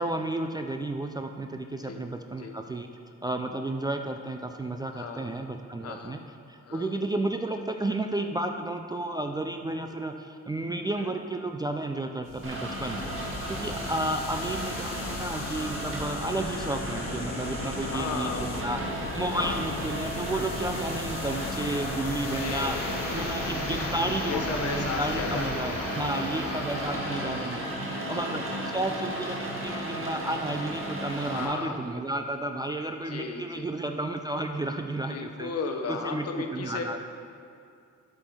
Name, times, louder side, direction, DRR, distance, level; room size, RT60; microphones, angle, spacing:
voice 1, 0.0-2.9 3.2-6.2 6.5-35.5 35.9-37.0, right 2 dB, 15° right, 5 dB, 0.3 m, -32 dB
voice 2, 4.9-5.4 5.8-6.2 6.6-7.0 11.0-11.2 13.0-13.8 17.8-18.7 19.3-19.6 22.3-23.4 24.3-26.7 27.9-28.5 31.3-31.9 33.1-33.7 35.1-37.0, left 5 dB, 55° left, 4 dB, 0.9 m, -36 dB
sound 1, 12.2-27.6, left 3 dB, 80° left, 1.1 m, -37 dB
Rain, 12.4-31.4, right 1 dB, 45° right, 1.6 m, -35 dB
8.4 x 5.5 x 4.6 m, 2.4 s
cardioid pair, 90°, 30 cm